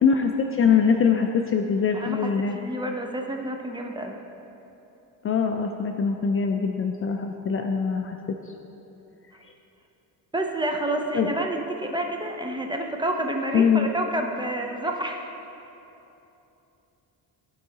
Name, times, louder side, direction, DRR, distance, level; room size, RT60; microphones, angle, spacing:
voice 1, 0.0-2.6 5.2-8.2 11.1-11.3 13.5-13.9, left 6 dB, 35° left, 4 dB, 0.4 m, -23 dB
voice 2, 2.6-4.2 10.3-15.3, right 1 dB, 10° right, 2 dB, 0.6 m, -29 dB
14.0 x 4.6 x 2.9 m, 2.9 s
cardioid pair, 105°, 39 cm